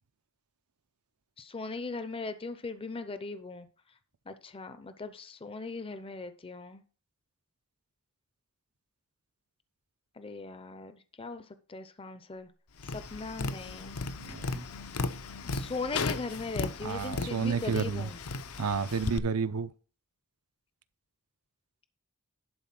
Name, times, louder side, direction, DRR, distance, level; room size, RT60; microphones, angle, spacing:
voice 1, 1.4-3.7 4.3-6.8 10.2-10.9 11.2-11.4 11.7-12.5 12.8-14.0 15.5-18.2, left 3 dB, 25° left, 0.5 m, -39 dB
Tap, 12.8-19.2, left 3 dB, 75° left, 0.7 m, -36 dB
voice 2, 14.2-14.6 16.8-18.1 18.6-19.7, right 5 dB, 80° right, 0.6 m, -31 dB
11.5 x 4.0 x 5.8 m
head